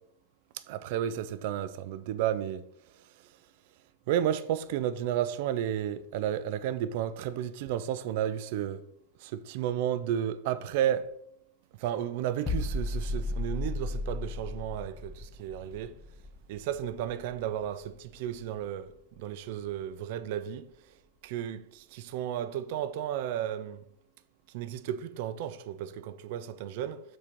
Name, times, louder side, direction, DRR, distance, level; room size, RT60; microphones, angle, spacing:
voice 1, 0.7-2.6 4.1-8.8 9.2-11.1 11.8-16.0 16.5-20.7 21.2-23.8 24.5-27.0, right 10 dB, 50° right, 0.5 m, -32 dB
sound 1, 12.5-18.2 18.4-18.7, left 2 dB, 20° left, 0.8 m, -35 dB
6.1 x 4.4 x 6.1 m
figure-of-eight pair, 90°, 0 cm